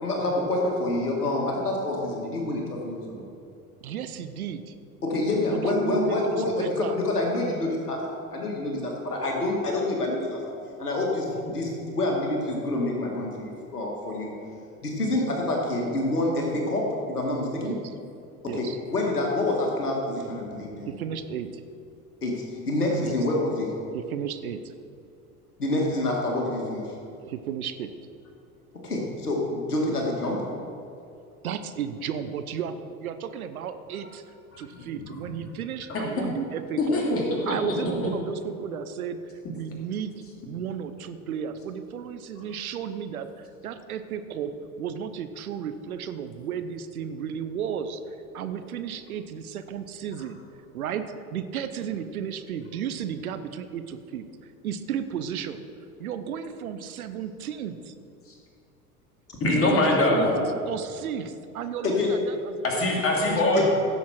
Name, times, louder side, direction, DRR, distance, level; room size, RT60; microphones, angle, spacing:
voice 1, 0.0-3.3 5.0-10.5 10.8-14.3 14.8-17.8 18.4-20.9 22.2-23.7 25.6-26.9 28.8-30.5 61.8-62.1 63.5-63.6, left 2 dB, 80° left, -1 dB, 2.2 m, -27 dB
voice 2, 3.8-4.7 5.5-7.0 11.4-11.6 15.2-15.4 17.6-17.9 18.5-18.8 20.9-21.5 23.0-23.2 23.9-24.6 27.2-27.9 31.4-34.2 34.6-37.0 37.5-39.2 39.5-44.5 44.8-50.4 50.7-51.0 51.3-55.6 56.0-57.9 59.7-60.3 60.6-63.0 63.4-63.6, right 8 dB, 70° right, 10 dB, 0.8 m, -34 dB
voice 3, 35.9-36.2 36.8-38.1 59.4-60.5 62.6-63.6, left 1 dB, 30° left, -2 dB, 2.9 m, -23 dB
16.0 x 7.3 x 4.5 m, 2.6 s
figure-of-eight pair, 70°, 45 cm